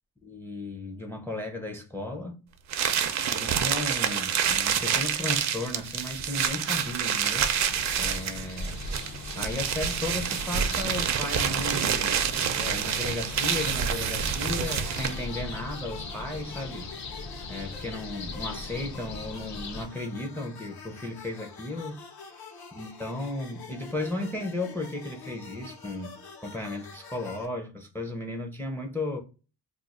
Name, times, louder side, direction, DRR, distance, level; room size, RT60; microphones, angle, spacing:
voice 1, 0.2-2.4 3.3-7.5 8.0-8.8 9.3-12.2 12.6-16.9 17.5-22.0 22.7-26.2 26.4-29.2, left 2 dB, 5° left, 0.4 m, -35 dB
sound 1, 2.7-15.3, right 8 dB, 50° right, 0.4 m, -28 dB
sound 2, 4.8-19.8, left 3 dB, 50° left, 0.6 m, -40 dB
sound 3, 14.5-27.5, left 4 dB, 75° left, 0.8 m, -46 dB
2.4 x 2.3 x 3.9 m
cardioid pair, 140°, 37 cm